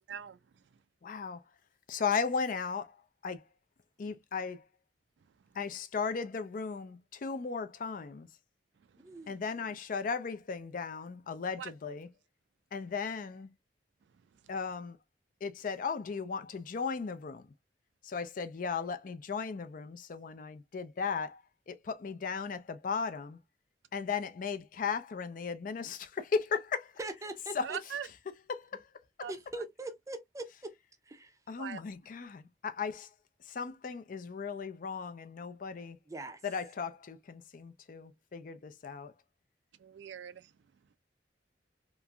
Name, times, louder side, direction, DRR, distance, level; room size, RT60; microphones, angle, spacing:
voice 1, 0.1-0.4 9.1-9.2 11.6-11.7 27.6-28.1 29.2-29.3 31.6-31.8 39.8-40.5, right 8 dB, 80° right, 0.4 m, -41 dB
voice 2, 1.0-1.6 1.9-3.5 4.0-4.7 5.5-8.4 9.3-12.1 12.7-13.5 14.5-15.0 15.4-17.5 18.0-23.4 23.9-27.0 27.5-28.0 28.3-29.3 31.5-33.1 33.4-36.0 36.4-39.2, left 5 dB, 50° left, 0.4 m, -36 dB
voice 3, 9.0-9.4 27.0-27.8 29.3-30.7 31.1-31.4 36.1-36.4, right 2 dB, 20° right, 0.5 m, -42 dB
2.9 x 2.5 x 2.2 m
head